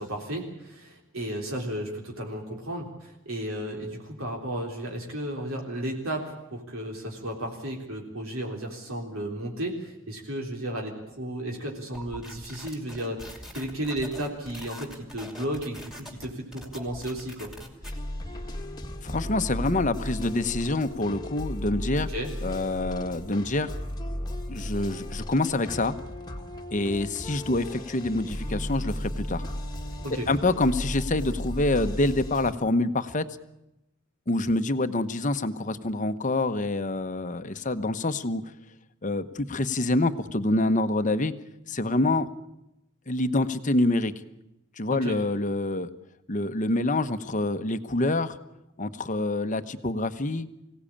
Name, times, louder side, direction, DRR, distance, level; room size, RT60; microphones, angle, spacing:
voice 1, 0.0-17.5 22.1-22.3 30.0-30.3 44.9-45.2, right 1 dB, 65° right, 0 dB, 3.7 m, -34 dB
sound 1, 11.9-17.9, left 1 dB, ahead, 2.7 m, -44 dB
sound 2, 17.8-32.5, left 1 dB, 20° left, 1.6 m, -35 dB
voice 2, 19.0-22.1 22.4-23.7 24.5-26.0 26.7-29.4 30.1-33.2 34.3-38.4 39.0-41.3 41.7-42.3 43.1-44.1 44.8-45.9 46.3-48.4 48.8-50.5, left 2 dB, 35° left, 10 dB, 1.0 m, -26 dB
24.5 x 17.0 x 8.7 m, 0.90 s
head